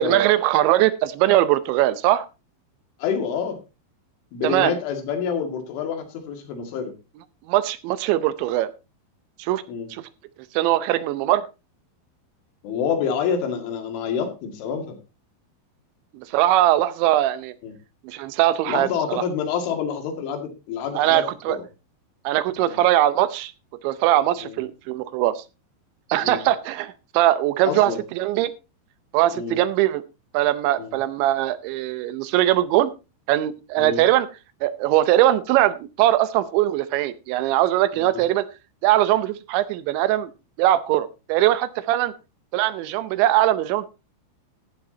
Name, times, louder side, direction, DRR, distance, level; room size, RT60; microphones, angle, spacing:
voice 1, 0.0-2.3 4.4-4.7 7.5-8.7 9.4-9.6 9.9-10.0 10.5-11.4 16.1-17.5 18.0-19.2 20.9-21.6 22.2-23.5 23.8-25.4 26.1-28.5 29.1-30.0 30.3-32.9 33.3-34.3 34.6-38.5 38.8-40.3 40.6-42.1 42.5-43.9, right 14 dB, 80° right, 14 dB, 3.0 m, -21 dB
voice 2, 3.0-3.6 4.3-6.9 9.7-9.9 12.6-15.0 17.6-17.7 18.7-21.6 22.6-22.8 24.4-24.6 26.2-26.4 27.7-28.0 29.3-29.6 30.8-31.0 33.8-34.0 37.9-38.1, left 7 dB, 85° left, 5 dB, 4.6 m, -27 dB
14.5 x 11.0 x 2.8 m, 0.28 s
omnidirectional pair, 5.4 m